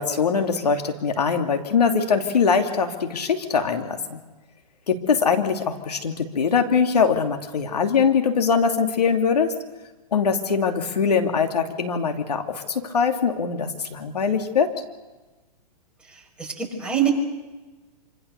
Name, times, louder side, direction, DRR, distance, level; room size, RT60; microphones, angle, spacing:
voice 1, 0.0-4.2 4.9-9.5 10.1-14.7, left 6 dB, 80° left, 5 dB, 2.8 m, -22 dB
voice 2, 16.4-17.1, right 9 dB, 5° right, -1 dB, 5.8 m, -24 dB
26.0 x 26.0 x 6.8 m, 1.2 s
hypercardioid pair, 125°, 20 cm